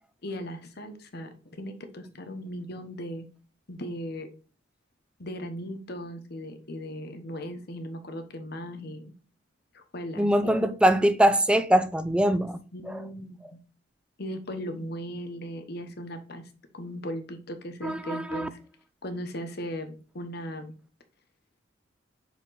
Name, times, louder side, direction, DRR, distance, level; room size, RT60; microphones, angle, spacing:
voice 1, 0.2-3.3 3.7-4.3 5.2-9.1 9.7-10.3 12.7-13.6 14.2-18.6 19.0-20.7, equal, 60° left, 1.1 m, -38 dB
voice 2, 10.2-12.6 17.8-18.5, right 1 dB, 5° right, 0.5 m, -22 dB
7.3 x 3.8 x 3.9 m
head